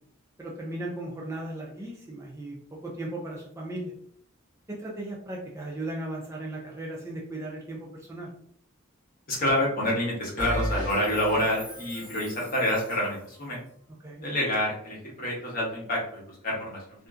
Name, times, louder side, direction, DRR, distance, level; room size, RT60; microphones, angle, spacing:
voice 1, 0.4-3.9 4.7-8.3 14.0-14.2, right 1 dB, 15° right, -2 dB, 0.4 m, -36 dB
voice 2, 9.3-13.6 14.2-17.1, left 1 dB, 45° left, -3 dB, 1.0 m, -28 dB
Bell, 10.4-13.2, equal, 20° left, 1.3 m, -35 dB
2.6 x 2.5 x 2.2 m, 0.63 s
head